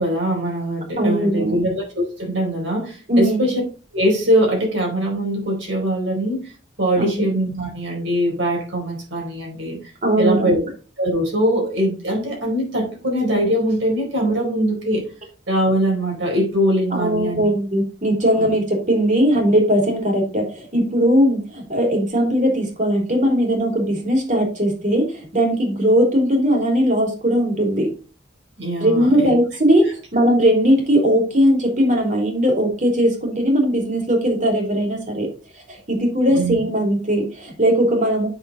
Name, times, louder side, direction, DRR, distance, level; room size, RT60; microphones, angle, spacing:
voice 1, 0.0-3.6 3.9-6.4 6.8-9.8 10.2-10.6 11.0-15.1 15.5-17.4 18.4-18.5 28.6-29.3 36.3-36.6, equal, 75° right, 1 dB, 4.4 m, -22 dB
voice 2, 1.0-1.6 3.1-3.4 7.0-7.2 10.0-10.6 16.9-27.9 28.8-29.8 30.1-35.3 35.7-38.3, equal, 40° right, 1 dB, 3.3 m, -19 dB
7.9 x 6.6 x 4.1 m, 0.35 s
head